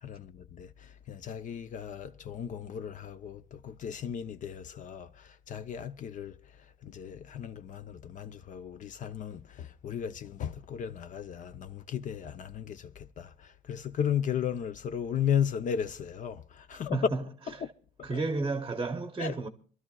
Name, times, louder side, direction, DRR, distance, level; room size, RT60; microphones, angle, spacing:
voice 1, 0.0-17.0 17.6-17.7 18.0-18.1 19.2-19.3, left 8 dB, 50° left, 0.6 m, -35 dB
voice 2, 16.9-17.2 18.0-19.5, right 3 dB, 20° right, 0.8 m, -31 dB
27.0 x 12.5 x 2.3 m
cardioid pair, 110°, 17 cm